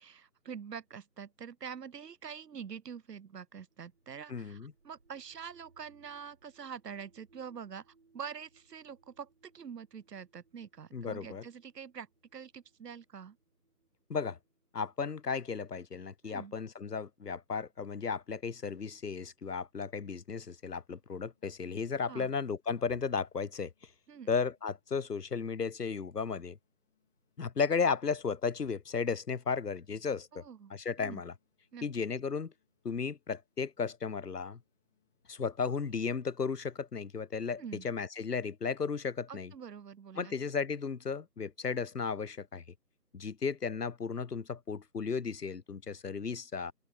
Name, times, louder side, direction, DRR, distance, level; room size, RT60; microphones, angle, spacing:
voice 1, 0.0-13.4 16.2-16.5 22.1-22.3 24.1-24.3 30.3-30.7 31.0-31.2 31.7-31.8 37.6-37.9 39.3-40.3, right 7 dB, 75° right, 0.7 m, -45 dB
sound 1, 3.7-15.5, right 4 dB, 40° right, 3.4 m, -70 dB
voice 2, 4.3-4.7 10.9-11.4 14.1-14.4 14.7-23.7 24.3-26.6 27.4-30.4 30.7-31.3 31.8-32.5 32.8-34.6 35.3-39.5 40.2-42.6 43.1-46.7, left 5 dB, 70° left, 1.1 m, -34 dB
sound 2, 20.2-37.2, left 9 dB, ahead, 1.6 m, -82 dB
open air
figure-of-eight pair, 170°, 48 cm